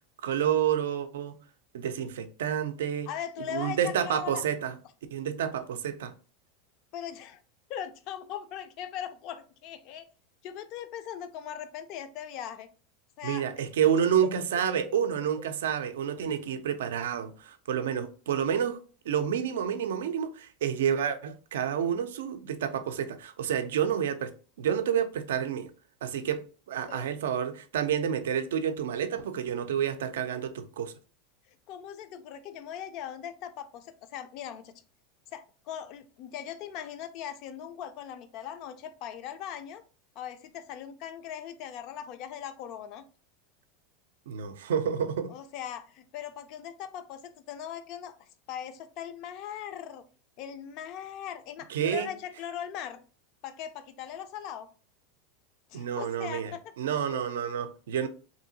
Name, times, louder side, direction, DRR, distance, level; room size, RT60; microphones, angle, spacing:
voice 1, 0.2-1.3 1.7-3.1 3.5-4.8 5.1-6.1 13.2-18.8 19.1-24.3 24.6-25.7 26.0-26.4 26.7-30.9 44.3-45.3 51.7-52.1 55.7-58.1, right 8 dB, 85° right, 0.4 m, -29 dB
voice 2, 3.1-4.5 6.9-7.4 7.7-10.1 10.4-12.7 13.2-13.5 26.9-27.1 31.7-34.7 35.3-39.8 40.2-43.0 45.3-48.1 48.5-50.0 50.4-53.0 53.4-54.7 55.7-56.6 57.1-57.2, left 9 dB, 55° left, 0.4 m, -39 dB
2.8 x 2.7 x 2.7 m
supercardioid pair, 125°, 0 cm